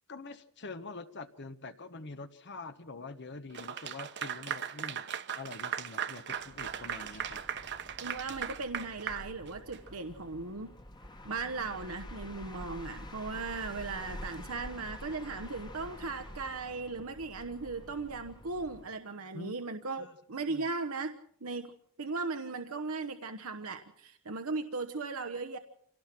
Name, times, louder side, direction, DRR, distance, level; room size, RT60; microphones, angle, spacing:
voice 1, 0.1-5.1 5.3-7.4 19.3-19.5 20.0-20.1 20.5-20.7, left 3 dB, 50° left, 10 dB, 1.2 m, -45 dB
Clapping / Applause, 3.5-9.9, right 8 dB, 55° right, 1.2 m, -38 dB
sound 1, 6.4-19.0, left 1 dB, 20° left, 1.5 m, -48 dB
voice 2, 8.0-10.7 11.2-21.7 22.0-25.6, right 3 dB, 75° right, 8 dB, 1.1 m, -37 dB
26.5 x 18.0 x 6.0 m, 0.66 s
head